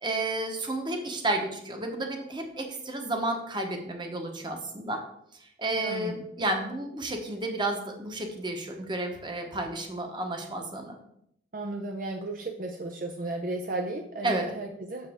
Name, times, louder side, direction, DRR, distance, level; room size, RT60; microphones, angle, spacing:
voice 1, 0.0-5.0 5.6-11.0 14.2-14.5, right 2 dB, 25° right, 3 dB, 1.1 m, -31 dB
voice 2, 5.8-6.1 11.5-15.1, right 2 dB, 50° right, 3 dB, 0.6 m, -34 dB
7.4 x 6.9 x 3.6 m, 0.73 s
head